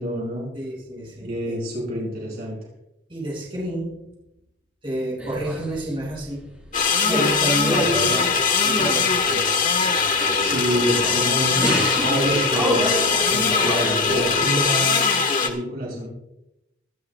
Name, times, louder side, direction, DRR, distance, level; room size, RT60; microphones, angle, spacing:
voice 1, 0.0-0.5 1.2-2.6 10.3-16.1, equal, 55° right, -3 dB, 6.3 m, -27 dB
voice 2, 0.5-1.6 3.1-4.0 4.8-6.4 7.1-8.3 8.6-9.5, right 1 dB, 30° right, -5 dB, 6.3 m, -29 dB
sound 1, 5.2-6.2 6.6-7.4 7.6-9.2 9.7-11.2 11.6-14.7, equal, 5° right, 4.8 m, -28 dB
sound 2, 6.7-15.5, left 5 dB, 45° left, 1.6 m, -21 dB
24.5 x 13.0 x 2.4 m, 0.89 s
head